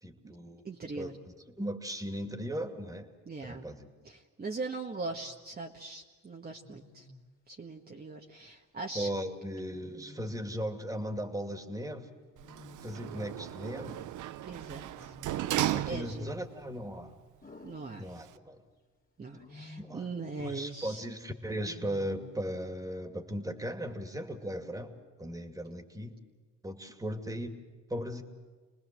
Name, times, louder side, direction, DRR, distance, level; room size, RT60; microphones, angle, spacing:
voice 1, 0.0-0.6 1.0-3.1 3.4-3.9 8.9-12.1 12.8-14.0 15.7-17.2 18.0-18.6 19.8-20.0 20.4-26.2 26.6-27.5 27.9-28.2, equal, 10° right, 6 dB, 2.6 m, -37 dB
voice 2, 0.6-1.2 3.2-3.7 4.0-7.1 7.5-9.1 14.4-15.1 15.9-16.3 17.6-18.1 19.2-21.0, right 3 dB, 30° right, 0 dB, 1.7 m, -40 dB
Wild animals, 5.0-5.4 6.6-7.3 9.7-10.6 12.4-13.4 14.9-15.9 17.4-18.5 19.3-20.1 21.4-22.5, left 2 dB, 30° left, 2.8 m, -53 dB
Sliding door, 12.4-16.5 16.9-17.0, right 13 dB, 80° right, 0.7 m, -35 dB
28.0 x 20.0 x 7.8 m, 1.3 s
cardioid pair, 90°, 30 cm